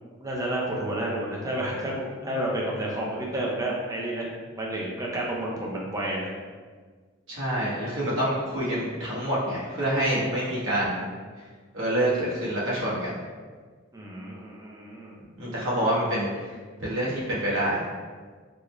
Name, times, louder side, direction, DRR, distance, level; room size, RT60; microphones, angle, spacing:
voice 1, 0.2-6.3 13.9-15.2, right 1 dB, 15° right, -3 dB, 0.5 m, -30 dB
voice 2, 7.3-11.1 11.7-13.2 15.4-16.3 16.8-17.8, right 1 dB, 70° right, -7 dB, 1.0 m, -26 dB
3.8 x 2.1 x 3.0 m, 1.5 s
head